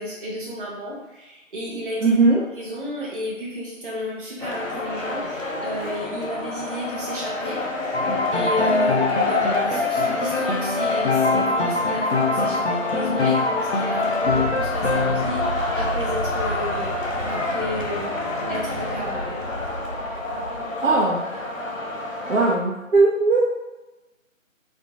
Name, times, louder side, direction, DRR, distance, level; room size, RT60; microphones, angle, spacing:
voice 1, 0.0-7.6 8.3-18.2 18.5-19.5, equal, 40° right, -6 dB, 0.7 m, -32 dB
voice 2, 2.0-2.4 20.8-21.2 22.3-23.5, right 3 dB, 75° right, -5 dB, 0.8 m, -18 dB
sound 1, 4.4-22.5, left 2 dB, 75° left, 0.9 m, -28 dB
Piano, 7.9-15.3, left 3 dB, 55° left, 0.5 m, -23 dB
sound 2, 14.2-21.0, equal, ahead, 0.6 m, -33 dB
4.2 x 2.2 x 2.8 m, 1.1 s
figure-of-eight pair, 160°, 39 cm